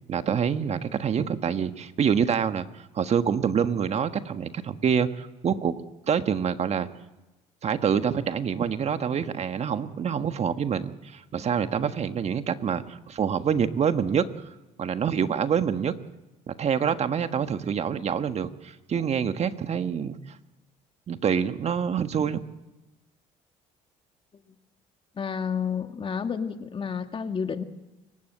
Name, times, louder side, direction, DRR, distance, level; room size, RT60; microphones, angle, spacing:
voice 1, 0.1-6.9 7.6-14.3 14.8-15.9 16.5-20.4 21.1-22.4, right 7 dB, 50° right, 9 dB, 1.5 m, -26 dB
voice 2, 25.2-27.6, left 6 dB, 35° left, 7 dB, 1.9 m, -30 dB
29.0 x 16.5 x 8.0 m, 1.0 s
supercardioid pair, 80°, 15 cm